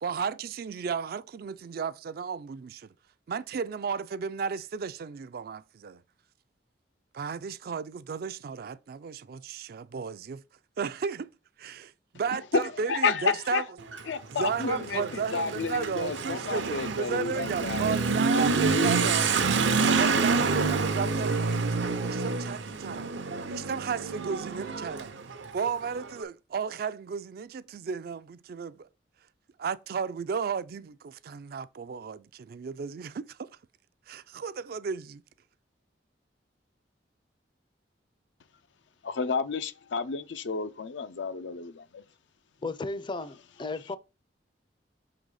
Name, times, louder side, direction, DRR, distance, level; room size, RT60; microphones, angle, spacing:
voice 1, 0.0-2.9 3.3-6.0 7.1-10.4 10.8-11.3 11.6-13.6 14.3-19.6 19.9-23.1 23.5-25.1 25.5-28.9 29.6-33.5 34.1-35.2, right 6 dB, 55° right, 0.3 m, -34 dB
voice 2, 12.5-13.6 14.1-19.2 39.0-42.0, left 4 dB, 80° left, 0.5 m, -31 dB
Motorcycle / Accelerating revving vroom, 13.8-26.1, right 4 dB, 85° right, 0.7 m, -28 dB
voice 3, 42.6-44.0, left 3 dB, 25° left, 0.5 m, -34 dB
6.0 x 3.9 x 4.8 m
head